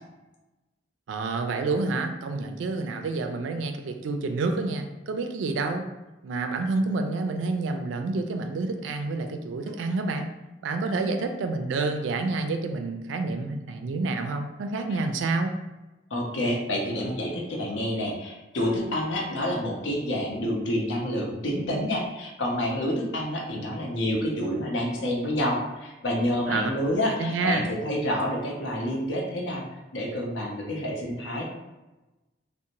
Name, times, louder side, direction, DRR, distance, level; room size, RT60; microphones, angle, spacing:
voice 1, 1.1-5.9 6.2-10.3 10.6-15.6 26.5-26.7 27.2-27.6, right 3 dB, 85° right, 6 dB, 0.3 m, -28 dB
voice 2, 16.1-29.6 29.9-31.4, left 1 dB, 90° left, -1 dB, 0.6 m, -28 dB
2.5 x 2.0 x 2.8 m, 1.1 s
head